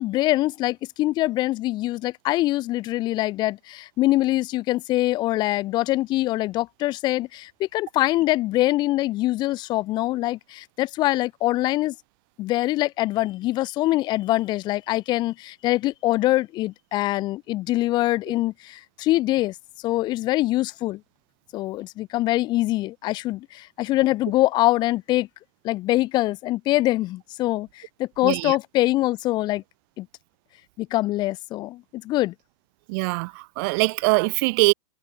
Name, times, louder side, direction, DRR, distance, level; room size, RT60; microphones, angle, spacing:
voice 1, 0.0-11.9 12.4-19.5 19.8-21.0 21.5-25.3 25.6-29.6 30.0-30.1 30.8-32.3, left 17 dB, 25° left, 0.8 m, -24 dB
voice 2, 28.2-28.6 32.9-34.7, right 31 dB, 35° right, 0.9 m, -22 dB
supercardioid pair, 160°, 19 cm